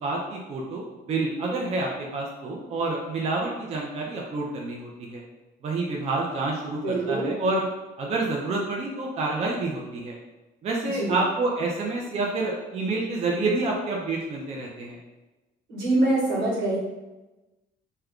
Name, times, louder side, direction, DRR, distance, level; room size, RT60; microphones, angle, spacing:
voice 1, 0.0-5.2 5.6-7.7 8.0-10.2 10.6-15.0, right 3 dB, 40° right, -1 dB, 0.4 m, -28 dB
voice 2, 6.8-7.3 10.9-11.2 15.7-16.8, right 2 dB, 85° right, -6 dB, 1.2 m, -24 dB
2.3 x 2.2 x 3.5 m, 1.1 s
cardioid pair, 110°, 17 cm